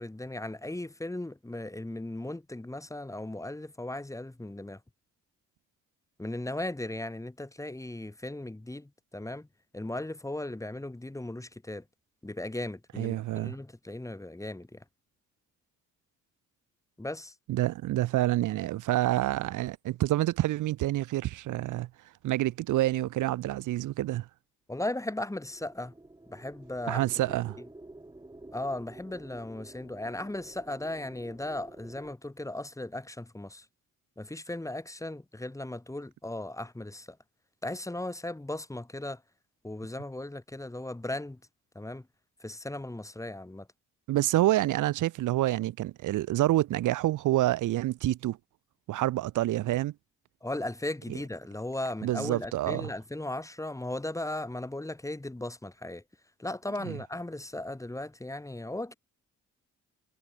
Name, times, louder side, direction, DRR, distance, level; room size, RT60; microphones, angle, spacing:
voice 1, 0.0-4.8 6.2-9.5 9.7-11.8 12.2-14.8 17.0-17.3 24.7-25.9 26.3-27.7 28.5-33.7 34.2-37.2 37.6-39.2 39.6-41.4 41.7-42.1 42.4-43.7 50.4-56.0 56.4-58.9, left 1 dB, 10° left, 4.1 m, -37 dB
voice 2, 13.0-13.5 17.5-21.9 22.2-24.3 26.9-27.6 44.1-48.4 48.9-49.9 52.0-52.9 56.9-57.0, right 15 dB, 80° right, 1.4 m, -27 dB
sound 1, 25.1-32.2, right 2 dB, 15° right, 6.2 m, -50 dB
cardioid pair, 90°, 30 cm